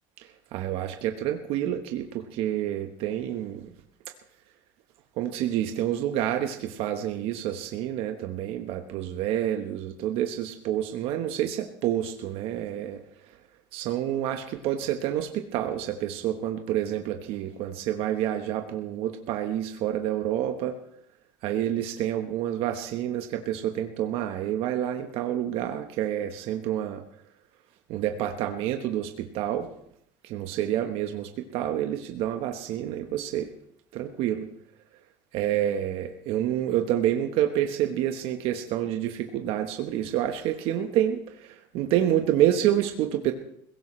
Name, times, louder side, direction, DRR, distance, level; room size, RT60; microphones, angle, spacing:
voice 1, 0.2-3.7 5.2-13.0 13.7-20.8 21.4-27.0 27.9-29.7 30.2-33.5 33.9-34.5 35.3-43.3, right 11 dB, 65° right, 5 dB, 1.3 m, -28 dB
21.0 x 17.0 x 3.3 m, 0.70 s
supercardioid pair, 100°, 11 cm